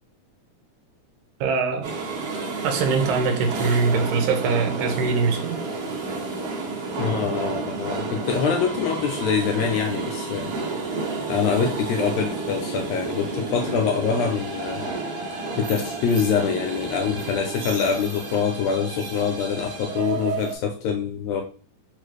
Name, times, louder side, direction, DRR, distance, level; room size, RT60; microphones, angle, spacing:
voice 1, 1.4-1.9 2.6-5.6, right 5 dB, 85° right, 2.1 m, -23 dB
sound 1, 1.8-20.6, right 3 dB, 65° right, 1.7 m, -31 dB
voice 2, 7.0-10.5 11.2-14.9 15.6-21.4, left 6 dB, 85° left, 1.5 m, -25 dB
4.8 x 2.4 x 3.1 m
omnidirectional pair, 3.5 m